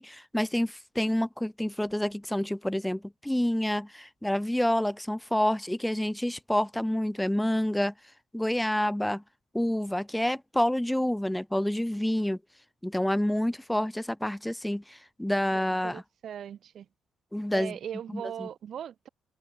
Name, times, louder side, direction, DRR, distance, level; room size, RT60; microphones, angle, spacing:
voice 1, 0.0-7.9 8.3-9.2 9.5-12.4 12.8-16.0 17.3-17.7 18.1-18.5, left 1 dB, 5° left, 3.5 m, -28 dB
voice 2, 15.5-16.9 17.5-19.1, right 9 dB, 60° right, 3.8 m, -39 dB
cardioid pair, 90°, 0 cm